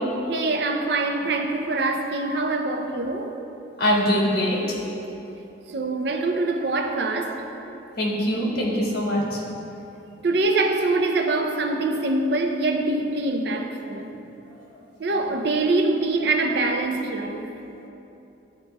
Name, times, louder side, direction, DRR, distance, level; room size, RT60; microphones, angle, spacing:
voice 1, 0.3-3.3 5.7-7.5 10.2-14.1 15.0-17.5, right 2 dB, 55° right, 0.5 m, -24 dB
voice 2, 3.8-4.8 8.0-9.4, equal, 55° left, 1.5 m, -23 dB
12.0 x 4.4 x 3.3 m
head